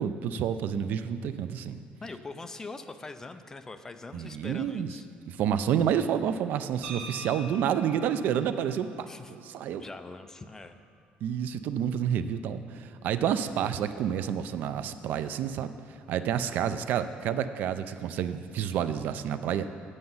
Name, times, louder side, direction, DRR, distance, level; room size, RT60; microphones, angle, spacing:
voice 1, 0.0-1.8 4.1-5.0 5.3-8.9 9.3-9.9 11.2-15.7 16.1-19.7, right 9 dB, 60° right, 11 dB, 0.4 m, -29 dB
voice 2, 2.0-5.1 9.1-9.4 9.8-10.8, left 3 dB, 15° left, 9 dB, 0.3 m, -43 dB
sound 1, 6.8-10.9, right 3 dB, 80° right, 1.6 m, -46 dB
8.5 x 7.8 x 5.5 m, 2.3 s
cardioid pair, 170°, 3 cm